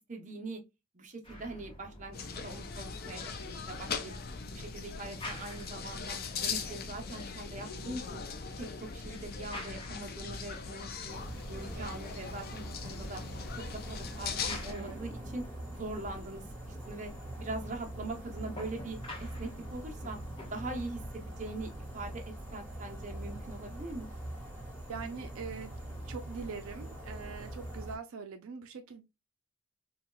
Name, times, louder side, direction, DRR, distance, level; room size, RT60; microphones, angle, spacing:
voice 1, 0.1-0.6 0.9-3.2 3.6-4.1 4.5-8.2 8.6-11.2 11.5-13.2 13.9-15.4 15.7-16.4 16.9-17.1 17.4-20.2 20.5-22.2 22.5-24.1, right 2 dB, 35° right, 0.8 m, -42 dB
sound 1, 1.2-20.9, left 1 dB, 25° left, 1.0 m, -51 dB
sound 2, 2.1-14.7, left 5 dB, 45° left, 0.5 m, -40 dB
sound 3, 11.1-28.0, right 1 dB, 10° left, 1.5 m, -43 dB
voice 2, 14.7-15.0 24.9-25.7 26.1-29.0, right 5 dB, 75° right, 0.4 m, -42 dB
4.1 x 2.3 x 2.2 m
head